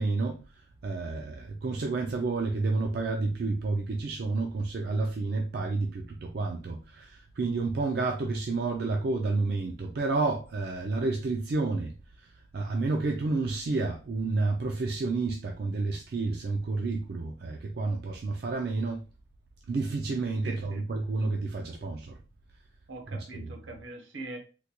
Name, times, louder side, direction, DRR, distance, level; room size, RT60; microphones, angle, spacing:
voice 1, 0.0-19.1 19.7-22.2 23.3-23.5, right 3 dB, 55° right, 0.4 m, -30 dB
voice 2, 20.4-20.9 22.9-24.4, right 2 dB, 75° right, 0.9 m, -42 dB
3.6 x 2.2 x 2.9 m
head